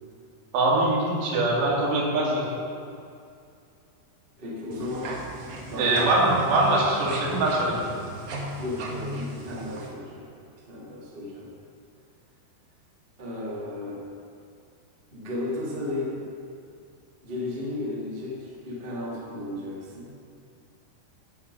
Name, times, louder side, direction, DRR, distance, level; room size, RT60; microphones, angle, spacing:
voice 1, 0.5-2.5 5.8-7.8, right 2 dB, 80° right, -4 dB, 4.4 m, -23 dB
voice 2, 4.4-5.2 5.6-6.1 8.5-10.2 10.7-11.5 13.2-14.0 15.1-16.2 17.2-20.2, left 2 dB, 20° right, -6 dB, 1.6 m, -34 dB
sound 1, 4.7-9.9, right 2 dB, 65° right, 1.5 m, -36 dB
15.0 x 7.4 x 5.3 m, 2.4 s
omnidirectional pair, 4.8 m